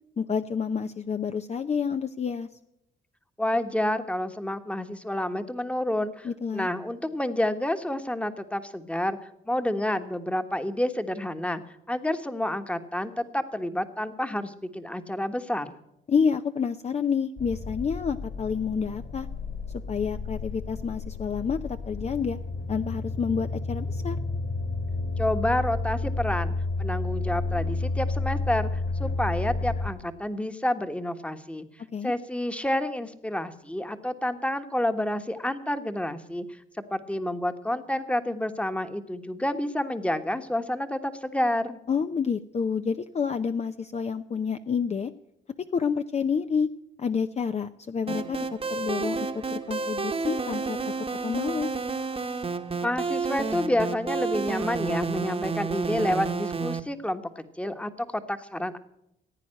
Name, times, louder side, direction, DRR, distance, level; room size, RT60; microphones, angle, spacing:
voice 1, 0.2-2.5 6.2-6.7 16.1-19.3 19.9-22.4 22.7-24.2 31.9-32.1 41.9-45.1 45.7-46.7 47.0-50.8 51.2-51.7, left 6 dB, 35° left, 8 dB, 0.6 m, -28 dB
voice 2, 3.4-6.3 6.5-9.2 9.5-11.6 11.9-15.8 25.2-26.5 26.8-28.7 29.0-31.6 32.0-36.4 36.9-41.8 52.8-58.8, left 1 dB, 5° left, 9 dB, 1.3 m, -29 dB
sound 1, 17.4-29.9, left 3 dB, 55° left, 3.3 m, -31 dB
sound 2, 48.1-56.8, right 4 dB, 30° right, 1.2 m, -30 dB
16.0 x 9.3 x 7.6 m, 0.82 s
cardioid pair, 90°, 20 cm